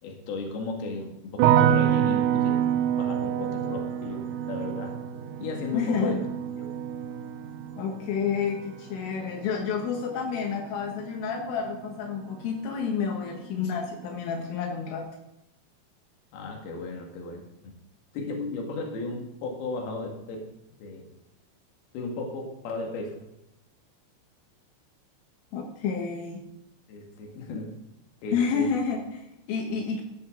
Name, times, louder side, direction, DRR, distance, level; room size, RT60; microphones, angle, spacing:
voice 1, 0.0-2.6 3.0-4.9 5.4-6.2 6.6-6.7 16.3-17.4 18.1-20.4 20.8-21.0 21.9-23.2 26.9-27.7 28.2-28.7, left 3 dB, 55° left, 1 dB, 3.5 m, -35 dB
sound 1, 1.4-12.5 12.7-13.5, right 10 dB, 80° right, 2.7 m, -28 dB
voice 2, 5.7-6.2 7.8-15.1 25.5-26.4 28.3-30.0, left 6 dB, 75° left, 2 dB, 3.9 m, -29 dB
13.5 x 11.5 x 3.9 m, 0.89 s
omnidirectional pair, 5.9 m